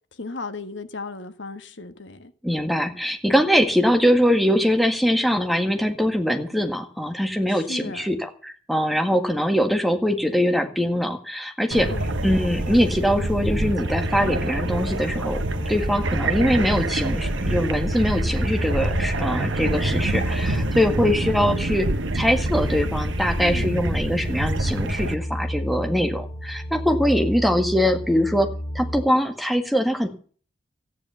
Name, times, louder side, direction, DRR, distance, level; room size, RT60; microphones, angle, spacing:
voice 1, 0.1-2.3 7.5-8.1 11.9-12.1 23.4-23.8, left 3 dB, 70° left, 1.4 m, -35 dB
voice 2, 2.4-11.9 12.2-15.4 15.7-30.1, equal, ahead, 1.7 m, -22 dB
sound 1, 11.7-25.1, right 2 dB, 80° right, 1.3 m, -26 dB
sound 2, 11.9-29.0, equal, 20° left, 3.2 m, -32 dB
14.5 x 9.9 x 6.9 m
head